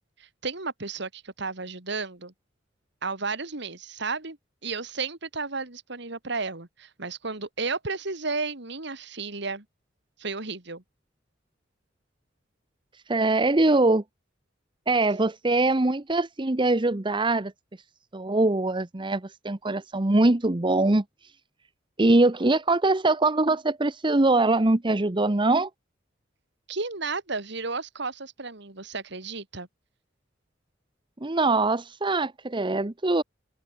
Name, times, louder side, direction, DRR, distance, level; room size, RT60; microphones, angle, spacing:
voice 1, 0.2-2.3 3.0-4.4 4.6-9.6 10.2-10.8 26.7-29.7, right 4 dB, 65° right, 2.9 m, -33 dB
voice 2, 13.1-14.0 14.9-17.5 18.1-21.0 22.0-25.7 31.2-33.2, right 2 dB, 25° right, 0.9 m, -22 dB
open air
head